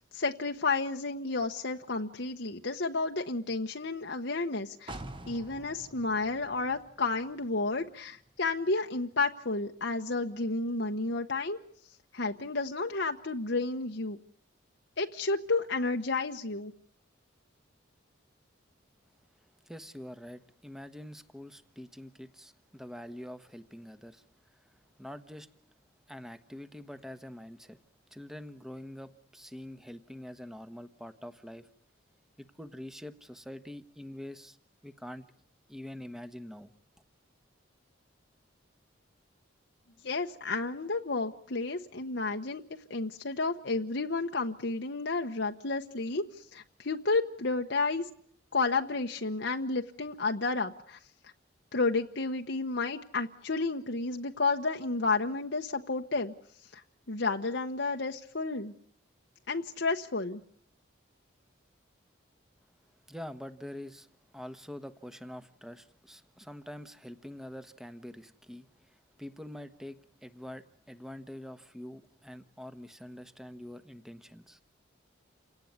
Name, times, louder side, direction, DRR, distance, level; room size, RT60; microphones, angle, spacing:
voice 1, 0.1-4.9 5.3-11.6 12.1-14.2 15.0-16.7 40.0-42.6 42.9-46.2 46.5-48.1 48.5-51.0 51.7-56.3 56.7-56.8 57.1-58.7 59.5-60.4, left 3 dB, 60° left, 3 dB, 1.1 m, -31 dB
sound 1, 4.9-8.6 9.0-9.1, right 1 dB, 25° right, 1.2 m, -48 dB
voice 2, 19.7-24.2 24.5-24.7 25.0-25.5 26.1-27.8 28.1-31.7 32.4-34.6 34.8-35.3 35.7-36.7 63.1-74.6, left 1 dB, ahead, 10 dB, 1.2 m, -45 dB
29.0 x 18.0 x 9.6 m, 0.64 s
head